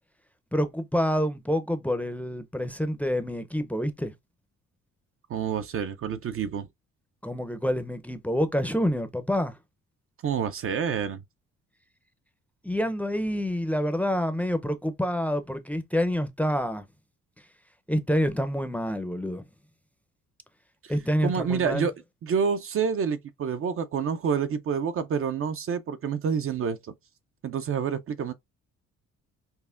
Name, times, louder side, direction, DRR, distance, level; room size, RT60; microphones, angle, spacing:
voice 1, 0.5-4.1 7.2-9.5 12.6-16.8 17.9-19.4 20.9-21.9, equal, 5° left, 0.5 m, -27 dB
voice 2, 5.3-6.7 10.2-11.2 20.8-20.9 21.2-21.9 22.2-26.8 27.4-28.3, right 6 dB, 45° right, 0.5 m, -28 dB
5.5 x 2.1 x 2.4 m
cardioid pair, 90°, 30 cm